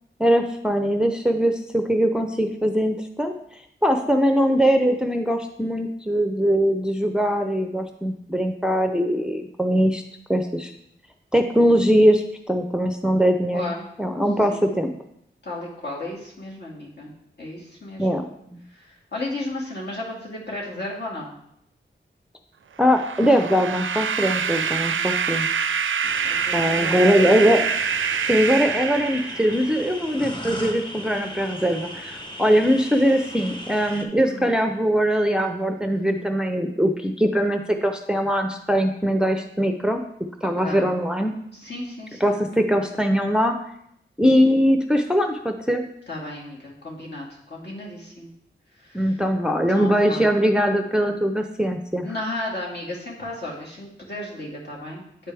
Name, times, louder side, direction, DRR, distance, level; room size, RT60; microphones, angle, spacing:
voice 1, 0.2-3.3 3.8-10.0 10.3-10.7 11.3-13.6 14.0-14.9 18.0-18.2 18.5-18.6 22.8-25.5 26.5-27.6 28.2-40.0 40.4-41.3 42.2-43.6 44.2-45.8 48.9-52.1, equal, 5° right, 5 dB, 0.6 m, -21 dB
voice 2, 13.5-13.9 14.5-14.7 15.4-17.1 17.4-18.1 18.7-21.3 26.2-27.7 34.2-34.5 40.4-40.9 41.5-42.4 46.1-48.3 48.8-49.2 49.7-50.3 52.0-55.0, left 1 dB, 60° left, -4 dB, 2.2 m, -34 dB
sound 1, 22.8-29.8, right 6 dB, 80° right, 0.4 m, -26 dB
sound 2, 26.0-34.0, equal, 25° left, 1.2 m, -37 dB
8.9 x 4.4 x 3.4 m, 0.74 s
cardioid pair, 45°, 20 cm